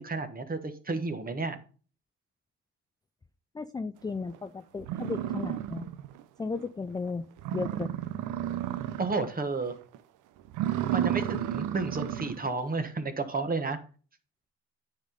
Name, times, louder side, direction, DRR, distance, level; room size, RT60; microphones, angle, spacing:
voice 1, 0.0-1.6 9.0-9.7 10.9-13.8, right 3 dB, 30° right, 8 dB, 1.4 m, -31 dB
voice 2, 3.5-5.9 6.4-7.3 7.5-7.9, left 4 dB, 15° left, 11 dB, 0.4 m, -35 dB
sound 1, 4.3-4.4 4.8-6.2 6.6-6.7 7.1-7.2 7.4-9.3 9.6-10.0 10.5-12.5, right 11 dB, 85° right, 0.6 m, -32 dB
9.4 x 4.1 x 5.1 m, 0.38 s
cardioid pair, 90°, 30 cm